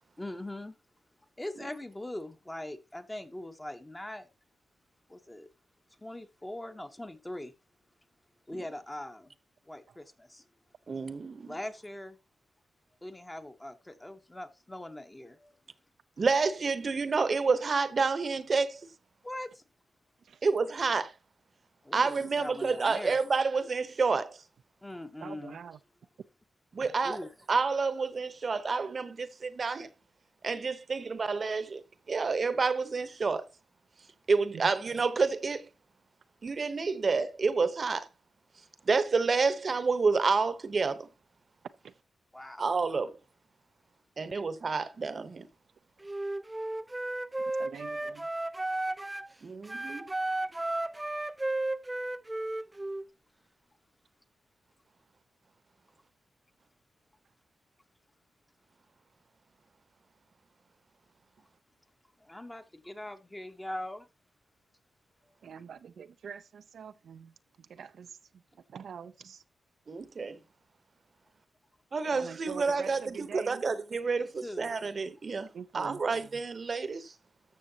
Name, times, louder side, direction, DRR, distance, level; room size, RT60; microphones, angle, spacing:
voice 1, 0.2-0.8 1.4-4.3 5.1-5.5 6.0-7.5 8.5-9.3 9.6-10.4 11.4-12.2 13.0-15.5 19.2-19.6 21.8-23.2 24.8-25.6 27.0-27.3 42.3-42.7 62.2-64.1 74.1-74.7, left 1 dB, 15° left, 1.0 m, -41 dB
voice 2, 10.9-11.5 16.2-18.8 20.4-21.1 21.9-24.4 26.7-27.2 27.5-29.9 30.4-33.5 34.3-35.7 36.4-38.1 38.9-41.1 42.6-43.2 44.2-45.5 49.4-50.0 69.9-70.4 71.9-77.1, right 4 dB, 45° right, 0.9 m, -29 dB
voice 3, 25.2-25.8 26.8-26.9 34.5-34.6 41.8-41.9 47.6-48.3 65.4-67.3 67.6-68.2 68.7-69.4 72.1-73.6 75.5-76.0, right 7 dB, 75° right, 0.5 m, -44 dB
Wind instrument woodwind instrument, 46.0-49.3 49.6-53.1, right 2 dB, 15° right, 0.4 m, -34 dB
13.5 x 6.3 x 2.8 m
wide cardioid pair, 105°, 0 cm